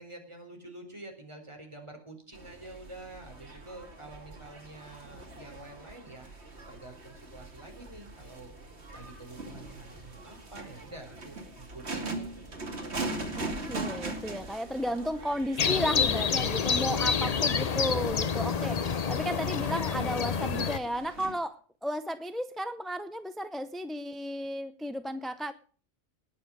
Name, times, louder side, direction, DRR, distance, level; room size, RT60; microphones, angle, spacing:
voice 1, 0.0-8.6 8.9-12.6 17.0-17.5, right 2 dB, 25° right, 3 dB, 4.0 m, -48 dB
sound 1, 2.3-21.3, right 2 dB, 60° right, 2.7 m, -41 dB
voice 2, 13.4-25.5, equal, ahead, 11 dB, 0.4 m, -34 dB
sound 2, 15.6-20.8, left 6 dB, 40° left, 0.6 m, -28 dB
19.5 x 7.3 x 6.3 m, 0.42 s
omnidirectional pair, 1.3 m